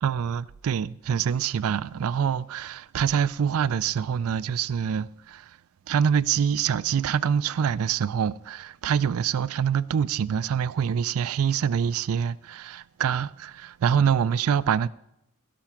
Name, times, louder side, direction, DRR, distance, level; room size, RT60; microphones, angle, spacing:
voice 1, 0.0-5.6 5.9-14.9, right 7 dB, 75° right, 0.4 m, -25 dB
16.5 x 6.0 x 5.7 m
head